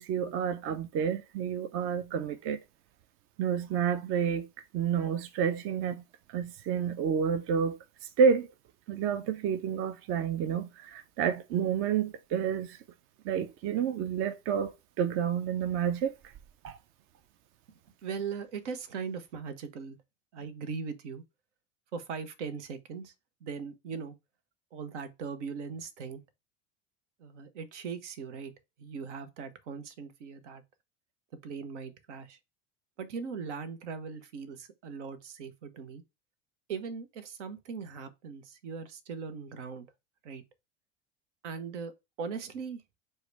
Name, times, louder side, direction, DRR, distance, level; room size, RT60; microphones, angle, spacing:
voice 1, 0.0-2.6 3.4-4.5 4.7-6.0 6.3-7.8 8.2-8.5 8.9-12.8 13.2-16.1 16.6-16.8, right 7 dB, 35° right, 0.5 m, -29 dB
voice 2, 18.0-20.0 20.3-21.2 21.9-23.1 23.4-24.2 24.7-26.2 27.2-28.5 28.8-30.6 31.4-32.4 33.0-36.0 36.7-39.9 40.2-40.4 41.4-41.9 42.2-42.8, right 5 dB, 70° right, 0.8 m, -39 dB
4.6 x 2.2 x 4.5 m
hypercardioid pair, 80°, 37 cm